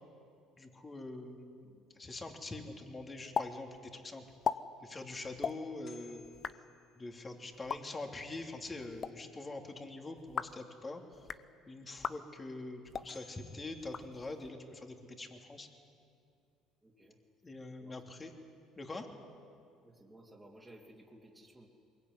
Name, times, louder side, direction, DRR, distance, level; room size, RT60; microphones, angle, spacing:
voice 1, 0.5-4.2 4.8-6.2 7.0-11.0 11.7-15.7 17.4-18.3 18.8-19.1, left 2 dB, 25° left, 3 dB, 3.1 m, -44 dB
sound 1, 3.3-3.5 3.7-3.8 4.3-4.6 5.3-5.5 6.2-6.5 7.5-7.8 8.8-9.1 10.2-10.6 11.1-11.4 12.0-12.2 12.8-13.1 13.8-14.5, left 7 dB, 40° left, 0.8 m, -37 dB
sound 2, 5.8-7.7 12.7-12.8 13.1-15.0, left 6 dB, 55° left, 4.3 m, -61 dB
voice 2, 16.8-17.2 17.8-18.0 19.8-21.7, right 1 dB, 10° right, -4 dB, 3.2 m, -57 dB
22.5 x 21.0 x 9.7 m, 2.4 s
supercardioid pair, 85°, 0 cm